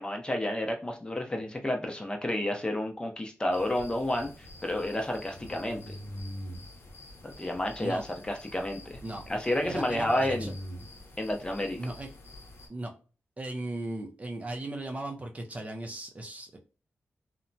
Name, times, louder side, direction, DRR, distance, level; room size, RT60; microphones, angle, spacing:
voice 1, 0.0-4.3 4.6-6.0 7.2-9.0 9.3-10.5 11.2-11.8, left 1 dB, 20° left, 0.6 m, -30 dB
sound 1, 3.5-12.7, left 1 dB, 65° left, 0.7 m, -45 dB
voice 2, 9.6-10.5 11.8-12.1 12.7-12.9 13.4-16.6, right 2 dB, 30° right, 0.5 m, -37 dB
2.8 x 2.1 x 2.6 m
cardioid pair, 65°, 5 cm